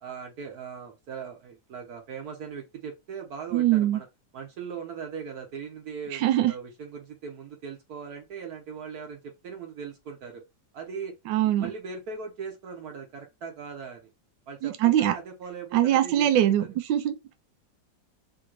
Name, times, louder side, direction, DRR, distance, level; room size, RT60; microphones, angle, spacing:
voice 1, 0.0-4.1 4.3-10.4 10.7-11.1 11.4-14.1 14.5-16.7, right 6 dB, 65° right, 1.2 m, -39 dB
voice 2, 3.5-4.0 6.1-6.5 11.3-11.7 14.6-15.1 15.7-17.3, right 12 dB, 85° right, 1.3 m, -23 dB
3.8 x 2.7 x 3.0 m
omnidirectional pair, 2.0 m